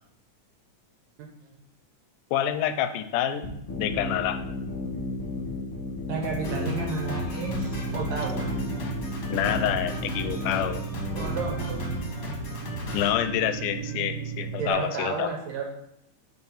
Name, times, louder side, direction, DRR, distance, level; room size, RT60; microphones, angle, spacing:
voice 1, 2.3-3.5 3.8-4.4 9.3-10.8 12.9-15.3, left 10 dB, 85° left, 9 dB, 2.1 m, -27 dB
sound 1, 3.4-12.1, left 2 dB, 35° left, 0.9 m, -33 dB
voice 2, 6.1-8.6 11.2-11.8 14.6-15.7, right 4 dB, 70° right, 1 dB, 1.8 m, -32 dB
Drum kit, 6.2-14.0, left 3 dB, 55° left, 1.4 m, -37 dB
sound 2, 7.5-14.7, right 9 dB, 90° right, 2.2 m, -36 dB
4.4 x 4.4 x 5.5 m, 0.77 s
omnidirectional pair, 3.6 m